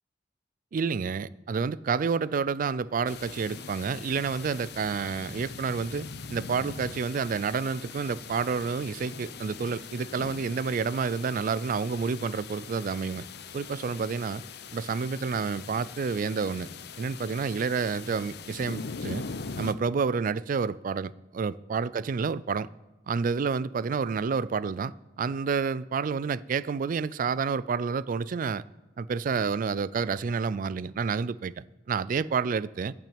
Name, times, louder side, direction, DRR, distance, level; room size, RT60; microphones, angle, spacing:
voice 1, 0.7-13.2 13.5-14.4 14.7-16.7 17.0-19.2 19.6-22.7 23.1-28.6 29.0-32.9, right 5 dB, 50° right, 0.3 m, -29 dB
sound 1, 3.1-19.7, left 5 dB, 65° left, 0.7 m, -42 dB
11.5 x 6.0 x 8.7 m
head